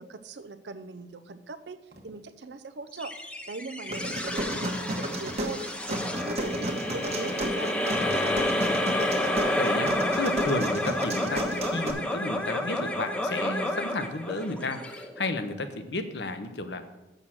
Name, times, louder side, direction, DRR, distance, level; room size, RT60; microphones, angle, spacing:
voice 1, 0.0-3.1 3.5-7.9, right 3 dB, 75° right, 12 dB, 0.6 m, -41 dB
sound 1, 1.9-2.5 3.1-3.2 3.9-4.4 5.2-5.6, equal, 55° right, 1.2 m, -49 dB
sound 2, 3.0-15.6, left 1 dB, 5° left, 0.6 m, -30 dB
sound 3, 3.9-11.9, right 1 dB, 35° right, 1.1 m, -32 dB
voice 2, 7.9-16.8, left 2 dB, 70° left, 9 dB, 0.8 m, -33 dB
6.6 x 6.2 x 7.3 m, 1.0 s
head